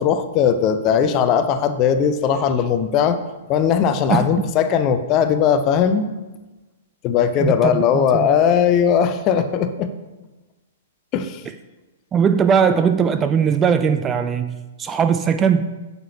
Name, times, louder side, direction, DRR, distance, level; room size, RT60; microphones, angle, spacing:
voice 1, 0.0-3.2 3.5-6.1 7.0-9.9 11.1-11.4, left 8 dB, 30° left, 10 dB, 0.5 m, -18 dB
voice 2, 4.1-4.4 7.4-8.3 12.1-15.7, right 7 dB, 20° right, 10 dB, 0.3 m, -19 dB
8.7 x 6.8 x 2.9 m, 1.1 s
figure-of-eight pair, 110°, 0 cm